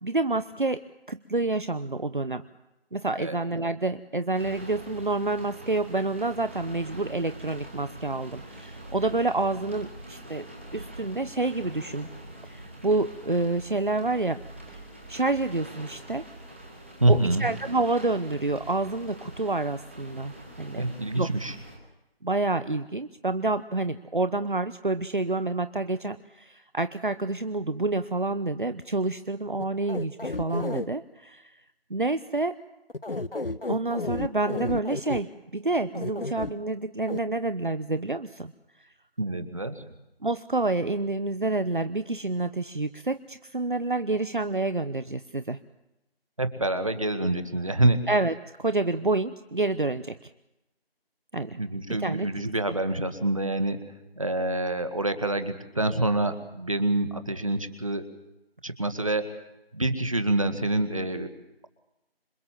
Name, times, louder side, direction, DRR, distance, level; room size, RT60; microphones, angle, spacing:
voice 1, 0.0-2.4 2.9-10.5 10.7-12.1 12.4-14.4 14.7-14.8 15.1-16.2 17.1-20.9 21.1-21.3 22.2-31.6 31.9-32.6 33.7-38.5 38.8-38.9 40.2-45.6 48.1-48.3 48.6-50.3 51.3-51.6 52.0-52.3, right 2 dB, 55° right, 12 dB, 1.0 m, -28 dB
sound 1, 4.3-21.8, right 1 dB, 10° right, 2.1 m, -44 dB
voice 2, 17.0-17.5 20.7-21.6 39.2-39.8 46.4-48.0 51.6-53.8 54.2-58.0 58.6-59.3 59.7-61.3, right 2 dB, 35° right, 9 dB, 2.0 m, -26 dB
sound 2, 29.6-30.9 32.9-35.2 35.9-36.5 37.1-37.2, left 2 dB, 65° left, 1.3 m, -32 dB
27.0 x 23.0 x 7.5 m, 0.93 s
figure-of-eight pair, 175°, 30 cm